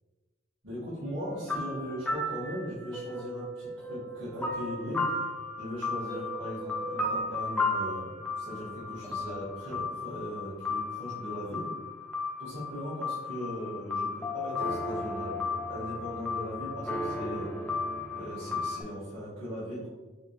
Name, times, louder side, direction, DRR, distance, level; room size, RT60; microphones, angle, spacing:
voice 1, 0.6-5.1 5.6-11.7 12.4-15.3 15.7-17.5 18.1-19.9, equal, 65° right, -11 dB, 1.3 m, -38 dB
sound 1, 1.1-18.8, left 3 dB, 5° left, 0.4 m, -34 dB
3.6 x 2.8 x 3.0 m, 1.2 s
head